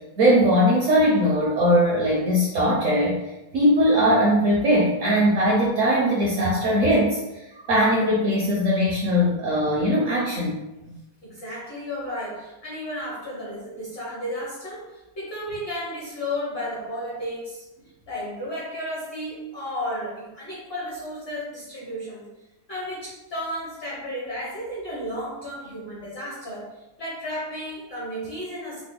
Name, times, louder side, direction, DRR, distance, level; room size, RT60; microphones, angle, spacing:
voice 1, 0.2-3.2 3.5-7.2 7.6-10.6, equal, 65° right, -4 dB, 0.8 m, -20 dB
voice 2, 11.2-22.3 22.7-26.7 27.0-28.8, equal, 50° left, -7 dB, 0.7 m, -33 dB
3.7 x 2.0 x 3.7 m, 0.99 s
omnidirectional pair, 1.9 m